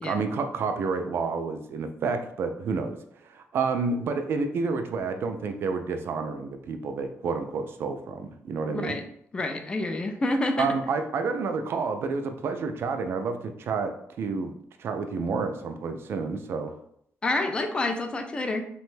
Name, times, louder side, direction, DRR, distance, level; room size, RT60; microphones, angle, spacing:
voice 1, 0.0-3.0 3.3-8.9 10.6-14.5 14.8-16.7, right 4 dB, 55° right, 7 dB, 0.3 m, -29 dB
voice 2, 8.7-9.0 9.3-10.7 17.2-18.6, left 2 dB, 20° left, 5 dB, 0.3 m, -28 dB
2.9 x 2.2 x 3.1 m, 0.70 s
wide cardioid pair, 160°, 5 cm